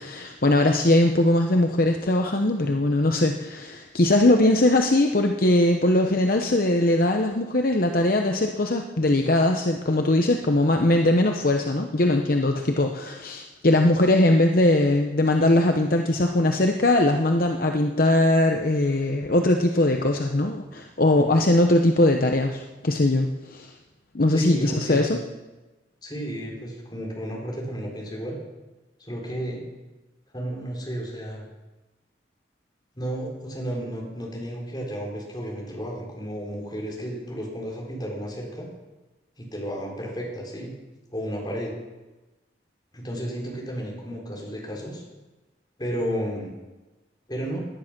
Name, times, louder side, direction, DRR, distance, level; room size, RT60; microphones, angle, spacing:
voice 1, 0.0-23.7 24.1-25.2, left 1 dB, 50° left, 4 dB, 0.9 m, -21 dB
voice 2, 24.3-25.1 26.0-28.4 29.0-29.6 30.3-31.4 33.0-38.7 39.4-40.7 41.1-41.7 42.9-45.0 45.8-46.5 47.3-47.6, equal, 25° left, -2 dB, 3.9 m, -32 dB
18.0 x 10.5 x 6.0 m, 1.1 s
head